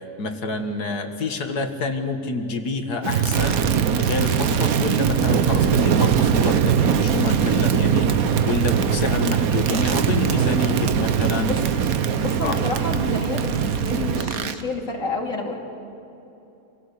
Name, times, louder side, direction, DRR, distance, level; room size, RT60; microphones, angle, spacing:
voice 1, 0.2-3.6 4.0-11.5 12.4-12.6, left 3 dB, 70° left, 6 dB, 2.2 m, -28 dB
Crackle, 3.0-14.6, right 7 dB, 65° right, 1.4 m, -21 dB
voice 2, 12.1-15.6, left 2 dB, 50° left, 0 dB, 3.3 m, -29 dB
26.5 x 17.5 x 8.4 m, 3.0 s
omnidirectional pair, 1.7 m